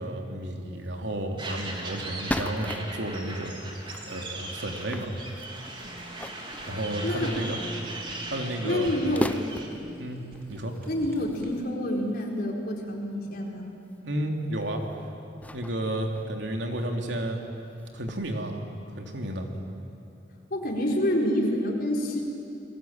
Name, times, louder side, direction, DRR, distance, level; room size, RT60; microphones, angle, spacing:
voice 1, 0.0-3.6 4.0-5.1 6.6-7.6 8.2-9.0 10.0-10.2 10.5-10.7 14.0-14.8 15.5-17.4 17.9-18.6 19.0-19.5, right 1 dB, 80° right, 2 dB, 3.2 m, -32 dB
sound 1, 0.8-0.9 1.3-1.4 1.9-3.3 3.8-7.5 7.9-8.2 8.5-8.6 9.1-9.9 10.3-12.5 13.1-13.2 13.9-14.1 14.4-14.9 15.4-16.9 17.2-17.3 17.6-18.1, left 1 dB, 10° left, 0.6 m, -38 dB
sound 2, 1.4-9.7, right 2 dB, 30° right, 3.3 m, -39 dB
Fire, 5.8-11.6, equal, 55° right, 3.7 m, -47 dB
voice 2, 7.0-7.3 8.6-9.4 10.9-13.7 20.5-22.2, left 1 dB, 55° left, 0 dB, 4.6 m, -27 dB
28.5 x 21.5 x 9.0 m, 2.7 s
head